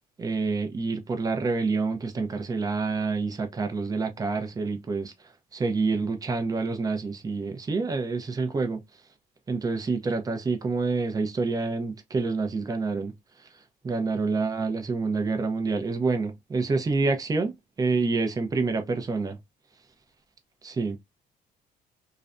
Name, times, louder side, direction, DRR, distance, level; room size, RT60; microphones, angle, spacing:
voice 1, 0.2-5.1 5.5-8.8 9.5-13.1 13.8-19.4 20.6-21.0, right 4 dB, 20° right, 0.6 m, -27 dB
2.4 x 2.1 x 2.4 m
cardioid pair, 110°, 17 cm